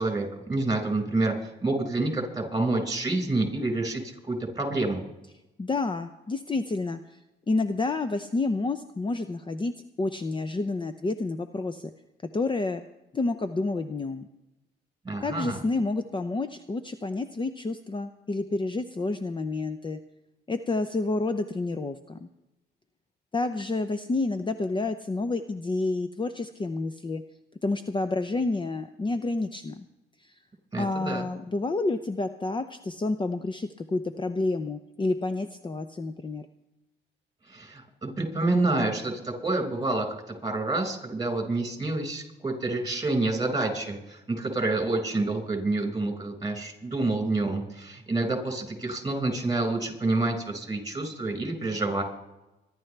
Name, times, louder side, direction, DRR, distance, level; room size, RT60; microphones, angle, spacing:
voice 1, 0.0-1.3 1.6-5.0 15.1-15.6 30.7-31.3 37.5-52.0, right 2 dB, 20° right, 4 dB, 5.3 m, -28 dB
voice 2, 5.6-7.2 7.5-11.9 12.3-12.8 13.1-14.3 15.2-20.0 20.5-22.3 23.3-27.2 27.6-29.8 30.2-30.4 30.8-36.5, left 3 dB, 25° left, 9 dB, 0.7 m, -29 dB
25.5 x 11.5 x 3.4 m, 0.96 s
cardioid pair, 90°, 20 cm